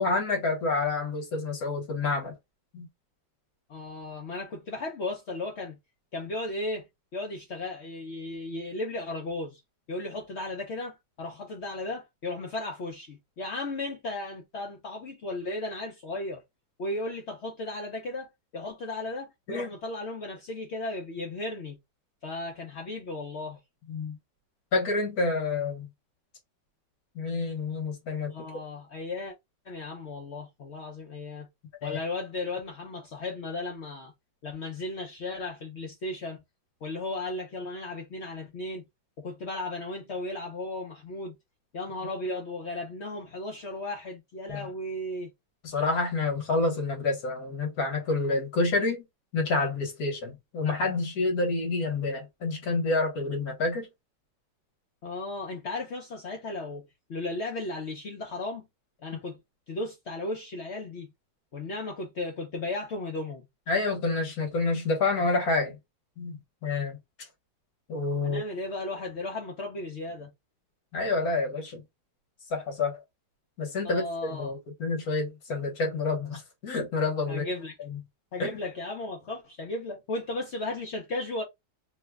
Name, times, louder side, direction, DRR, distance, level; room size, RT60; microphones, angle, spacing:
voice 1, 0.0-2.3 2.7-2.9 19.5-19.7 23.9-24.2 24.7-25.9 27.1-28.4 31.8-32.0 44.5-44.7 45.6-49.0 49.3-53.9 63.7-65.8 66.2-67.0 67.9-68.4 70.9-71.8 72.5-73.0 73.6-77.4 77.8-78.0 78.4-78.6, left 3 dB, 60° left, 1.4 m, -28 dB
voice 2, 3.7-5.8 6.1-6.9 7.1-9.6 9.9-16.4 16.8-21.8 22.2-23.6 28.3-29.3 29.7-31.5 31.8-34.1 34.4-36.4 36.8-38.8 39.2-41.3 41.7-45.3 55.0-56.8 57.1-58.6 59.0-59.4 59.7-61.1 61.5-63.4 68.2-70.3 73.8-74.5 77.3-77.7 78.3-81.4, left 2 dB, 75° left, 0.6 m, -35 dB
3.1 x 2.1 x 3.3 m
omnidirectional pair, 2.0 m